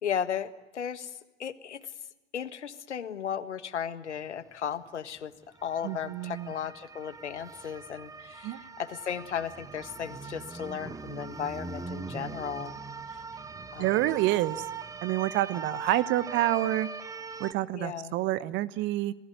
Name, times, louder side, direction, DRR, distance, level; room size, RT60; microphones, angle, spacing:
voice 1, 0.0-1.9 2.3-5.3 5.6-12.8 13.1-13.2 13.7-14.1 17.7-18.2, left 8 dB, 70° left, 14 dB, 1.6 m, -35 dB
sound 1, 4.4-4.5 4.9-5.0 5.4-17.5, right 5 dB, 10° right, 1.0 m, -41 dB
voice 2, 5.8-6.5 8.4-8.6 13.8-14.7 15.0-16.9 17.4-19.1, right 15 dB, 30° right, 17 dB, 1.0 m, -28 dB
28.0 x 19.5 x 9.2 m, 1.0 s
figure-of-eight pair, 95°, 36 cm